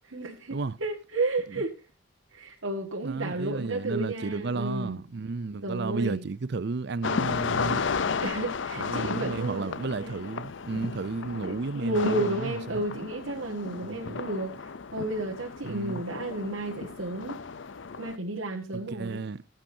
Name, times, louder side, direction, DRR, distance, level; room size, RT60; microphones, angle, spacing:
voice 1, 0.1-1.7 2.3-5.0 5.6-6.2 8.2-9.7 10.0-10.2 11.4-17.4 18.0-19.2, right 2 dB, 80° right, 1.9 m, -32 dB
voice 2, 3.0-7.8 8.8-12.8 13.9-14.2 15.6-16.0 18.7-19.4, right 3 dB, 60° right, 0.5 m, -33 dB
sound 1, 7.0-18.2, left 5 dB, 65° left, 0.6 m, -34 dB
20.0 x 9.0 x 2.8 m
head